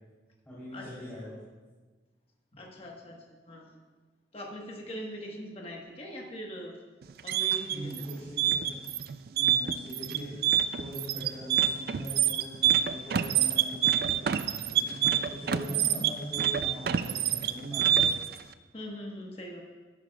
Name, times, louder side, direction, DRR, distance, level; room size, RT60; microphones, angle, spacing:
voice 1, 0.4-1.3 7.7-8.8 9.2-10.3 10.8-18.1, equal, 10° left, -11 dB, 3.3 m, -41 dB
voice 2, 2.5-3.6 4.3-6.7 7.2-7.9 18.7-19.6, equal, 35° left, -1 dB, 1.3 m, -41 dB
sound 1, 7.0-18.3, right 10 dB, 55° right, 0.3 m, -26 dB
13.0 x 11.0 x 2.3 m, 1.3 s
head